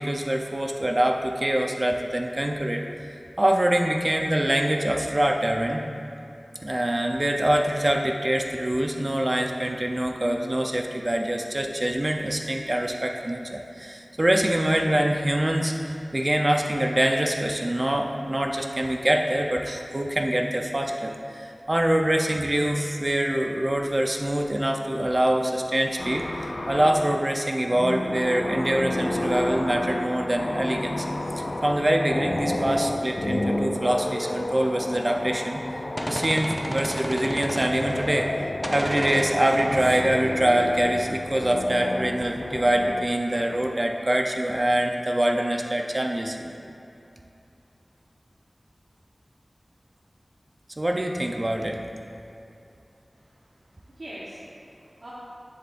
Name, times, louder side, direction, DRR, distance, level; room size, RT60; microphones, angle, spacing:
voice 1, 0.0-2.9 3.4-5.8 6.6-26.3 26.7-31.1 31.3-35.8 36.1-38.3 38.7-46.5 50.8-51.8, right 1 dB, 35° right, 2 dB, 0.6 m, -24 dB
sound 1, 26.0-27.3 27.6-43.1, left 1 dB, 60° left, 0.5 m, -31 dB
Telephone, 33.9-34.6 35.1-35.2 37.0-37.1 37.5-37.7 43.0-43.8 50.9-51.1, left 1 dB, 80° left, 1.5 m, -38 dB
Gunshot gunfire, 35.5-38.4 38.6-41.4, equal, ahead, 0.8 m, -33 dB
voice 2, 53.1-55.1, right 1 dB, 75° right, -9 dB, 1.3 m, -44 dB
9.8 x 7.9 x 2.6 m, 2.7 s
wide cardioid pair, 50°, 0 cm